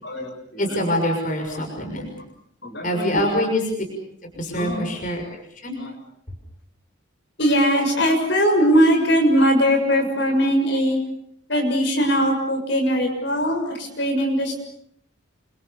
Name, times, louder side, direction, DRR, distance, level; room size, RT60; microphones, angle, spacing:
voice 1, 0.0-0.8 1.5-1.6 2.0-2.1 2.6-3.2 4.3-4.8 5.8-5.9 7.4-11.0 11.5-14.7, equal, 60° left, 3 dB, 6.8 m, -21 dB
voice 2, 0.6-2.1 2.8-3.6 4.4-5.2 5.6-5.8, left 1 dB, 40° left, 3 dB, 6.4 m, -24 dB
29.5 x 26.5 x 6.8 m, 0.68 s
head